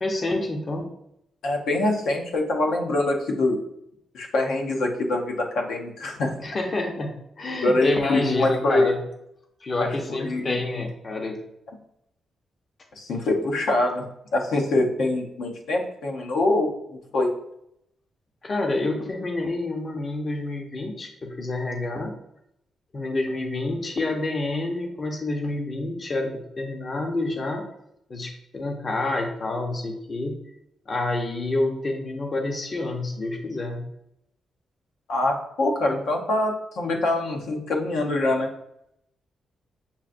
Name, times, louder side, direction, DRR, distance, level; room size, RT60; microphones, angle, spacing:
voice 1, 0.0-0.9 6.4-7.1 7.4-9.0 9.6-11.4 18.4-22.1 22.9-27.7 28.1-30.4 30.9-33.9, left 2 dB, 30° left, 2 dB, 0.5 m, -28 dB
voice 2, 1.4-3.6 4.1-6.3 7.6-8.9 9.8-10.6 13.0-14.1 14.3-16.7 17.1-17.3 35.1-38.5, left 2 dB, 85° left, 1 dB, 0.8 m, -24 dB
6.9 x 2.5 x 2.5 m, 0.78 s
wide cardioid pair, 160°, 0 cm